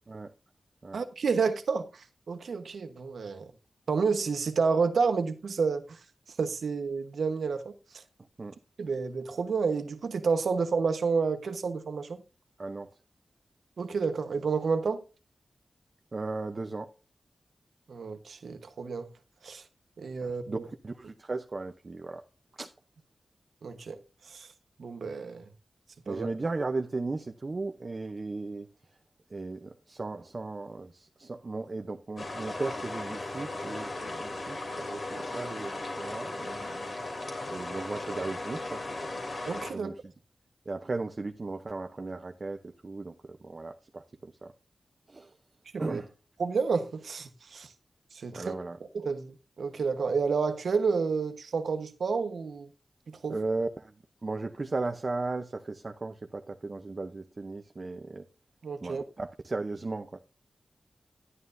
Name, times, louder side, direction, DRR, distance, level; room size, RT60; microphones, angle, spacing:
voice 1, 0.9-3.5 3.9-6.0 6.4-7.7 8.8-12.2 13.8-15.0 17.9-19.1 19.4-19.6 20.0-20.7 23.6-24.0 24.3-24.5 24.8-25.4 26.1-26.3 39.5-39.9 45.7-46.0 46.4-47.7 48.1-48.5 48.9-52.7 53.1-53.4 58.6-59.0, right 5 dB, 85° right, 1.2 m, -30 dB
voice 2, 12.6-12.9 16.1-16.9 20.2-22.2 22.6-22.7 26.1-28.7 29.3-38.8 39.7-40.0 40.7-44.5 45.1-45.3 45.8-46.1 48.3-48.8 53.3-53.9 54.2-58.3 58.8-60.2, right 3 dB, 45° right, 0.7 m, -36 dB
sound 1, 32.2-39.7, left 2 dB, 60° left, 3.1 m, -37 dB
11.0 x 11.0 x 2.7 m
wide cardioid pair, 70°, 0 cm